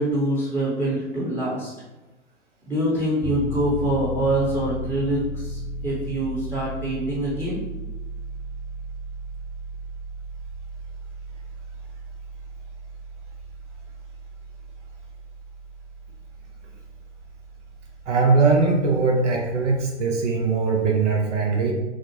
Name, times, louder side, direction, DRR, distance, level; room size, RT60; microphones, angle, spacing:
voice 1, 0.0-1.7 2.7-7.6, right 1 dB, 10° right, -7 dB, 0.7 m, -25 dB
Piano, 3.2-19.9, right 1 dB, 55° left, 0.9 m, -36 dB
voice 2, 18.1-21.7, right 4 dB, 80° right, 0 dB, 0.7 m, -20 dB
4.0 x 2.0 x 3.0 m, 1.1 s
figure-of-eight pair, 105°, 36 cm